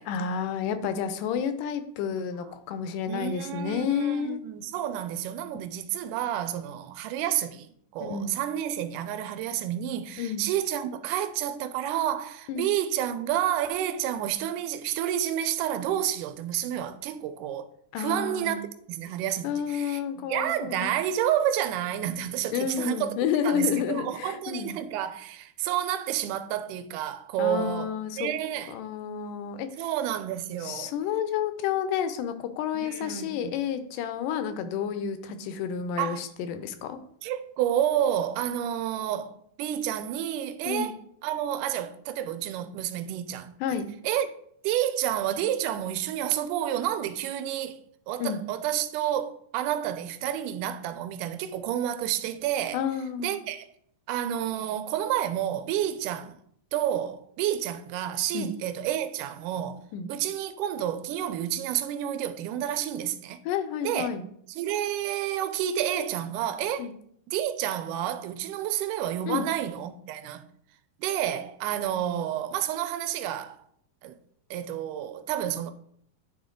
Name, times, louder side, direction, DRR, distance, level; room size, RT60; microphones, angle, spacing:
voice 1, 0.1-4.4 8.0-8.4 10.2-10.4 12.5-12.7 17.9-18.6 19.4-21.0 22.5-24.8 27.4-28.3 28.7-29.7 30.6-37.0 40.6-40.9 43.6-43.9 48.2-48.4 52.7-53.4 58.3-58.5 59.9-60.1 63.5-64.3 66.8-66.9 69.3-69.5, left 8 dB, 80° left, 2.1 m, -30 dB
voice 2, 3.1-17.7 18.0-23.2 23.4-28.7 29.8-30.9 32.7-33.5 36.0-36.2 37.2-43.5 44.0-44.3 44.6-52.8 53.2-53.7 54.1-56.4 56.7-59.8 60.1-63.4 63.8-64.1 64.5-66.9 67.3-70.4 71.0-73.6 74.0-74.2 74.5-75.7, right 11 dB, 80° right, 2.0 m, -30 dB
9.5 x 3.8 x 3.7 m
omnidirectional pair, 3.9 m